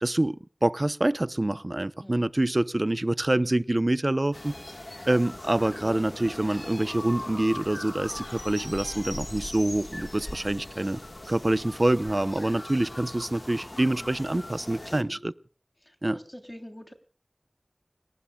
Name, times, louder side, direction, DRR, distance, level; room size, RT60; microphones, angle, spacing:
voice 1, 0.0-4.5 5.1-11.0 11.3-15.3 16.0-16.2, right 1 dB, 50° right, 0.7 m, -26 dB
sound 1, 4.3-15.0, left 1 dB, 45° left, 1.5 m, -40 dB
voice 2, 15.8-16.9, equal, 20° left, 3.2 m, -45 dB
30.0 x 19.0 x 2.3 m
wide cardioid pair, 40°, 0 cm